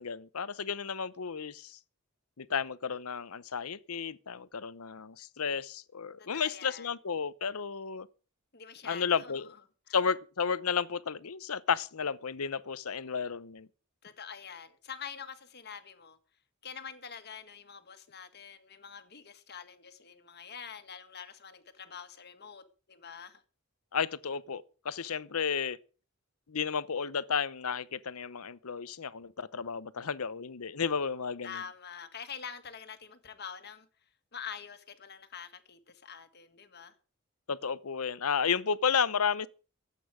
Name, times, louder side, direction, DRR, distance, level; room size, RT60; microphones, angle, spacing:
voice 1, 0.0-1.8 2.4-8.1 8.8-9.5 9.9-13.7 23.9-25.8 26.5-31.6 37.5-39.5, left 6 dB, 85° left, 0.8 m, -32 dB
voice 2, 6.2-6.9 8.5-9.6 9.9-10.0 14.0-16.2 16.6-23.4 31.4-33.9 34.3-36.9, left 7 dB, 50° left, 1.7 m, -46 dB
23.5 x 8.5 x 5.0 m
head